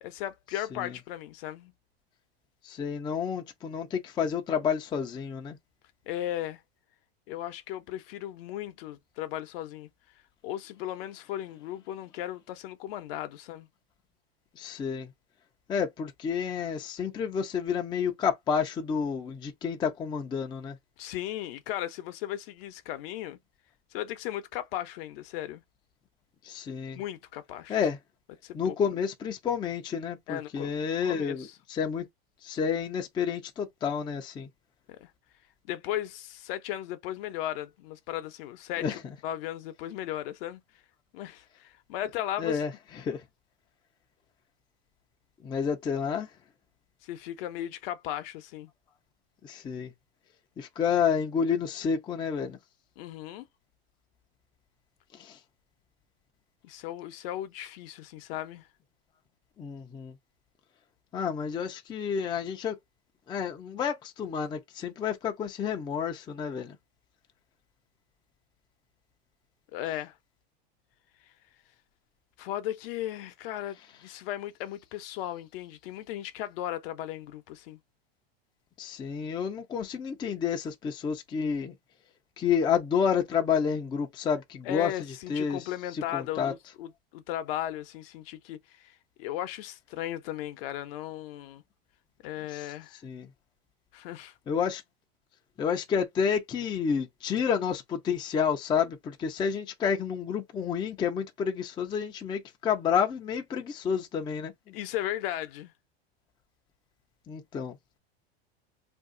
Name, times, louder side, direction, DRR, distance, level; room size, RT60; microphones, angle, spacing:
voice 1, 0.0-1.7 6.1-6.6 7.3-9.9 10.4-13.7 21.0-23.4 23.9-25.6 26.9-27.8 28.4-28.8 30.3-30.8 31.0-31.6 34.9-35.1 35.7-40.6 41.1-42.6 47.0-48.7 53.0-53.5 56.6-58.7 69.7-70.2 71.2-71.3 72.4-77.8 84.6-91.6 92.2-93.0 93.9-94.3 104.7-105.7, left 12 dB, 65° left, 0.7 m, -36 dB
voice 2, 2.6-5.6 14.6-15.1 15.7-20.8 26.4-27.0 27.7-28.0 28.5-32.1 32.4-34.5 38.8-39.0 42.4-42.7 43.0-43.2 45.4-46.3 49.4-49.9 50.6-52.6 55.2-55.4 59.6-60.1 61.1-62.8 63.3-66.8 78.8-81.7 82.4-84.9 85.3-85.6 85.9-86.5 92.5-92.7 93.0-93.3 94.5-94.8 95.6-104.5 107.3-107.8, left 7 dB, 15° left, 0.4 m, -30 dB
2.6 x 2.3 x 3.7 m
supercardioid pair, 125°, 32 cm